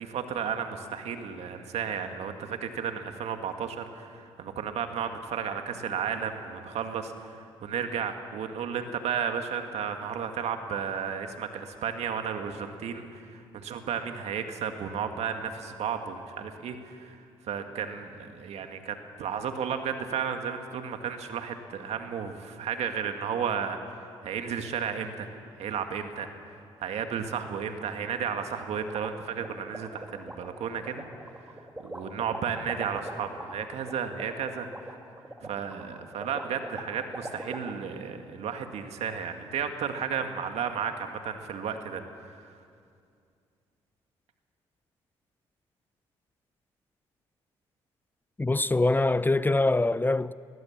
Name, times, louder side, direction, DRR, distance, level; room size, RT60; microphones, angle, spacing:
voice 1, 0.0-17.2 17.5-25.3 25.6-26.3 26.8-31.0 31.8-34.7 35.4-42.0, right 7 dB, 70° right, 1.9 m, -33 dB
sound 1, 28.6-37.7, right 1 dB, 15° right, 2.9 m, -41 dB
voice 2, 48.4-50.3, left 2 dB, 15° left, 0.5 m, -24 dB
20.0 x 20.0 x 7.3 m
supercardioid pair, 60°, 11 cm